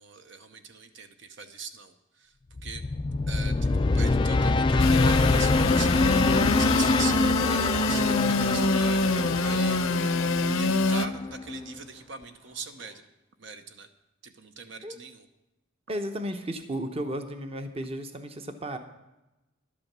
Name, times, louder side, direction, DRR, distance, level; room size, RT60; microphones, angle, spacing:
voice 1, 0.0-2.3 2.6-2.8 3.3-13.0 13.4-13.9 14.2-15.3, right 5 dB, 60° right, 8 dB, 0.9 m, -41 dB
sound 1, 2.6-11.7, left 3 dB, 25° left, 0.3 m, -25 dB
sound 2, 3.5-12.9, equal, 85° right, 5.8 m, -53 dB
Engine / Sawing, 4.8-11.1, left 2 dB, 85° left, 0.7 m, -26 dB
voice 2, 15.9-18.8, right 1 dB, 30° right, 7 dB, 0.9 m, -34 dB
11.5 x 8.5 x 7.3 m, 0.97 s
head